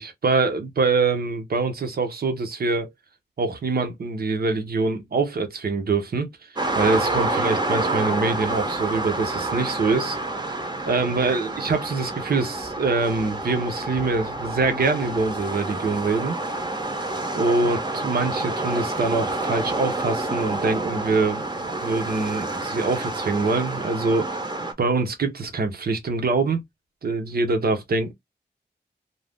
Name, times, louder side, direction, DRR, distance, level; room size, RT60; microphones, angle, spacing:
voice 1, 0.0-2.9 3.4-6.5 6.7-10.2 10.8-16.4 17.3-17.8 18.0-24.4 24.8-26.6 27.0-28.1, right 3 dB, 60° right, 0.9 m, -24 dB
sound 1, 6.6-24.7, right 2 dB, 25° right, 0.9 m, -28 dB
2.7 x 2.3 x 3.5 m
wide cardioid pair, 80°, 18 cm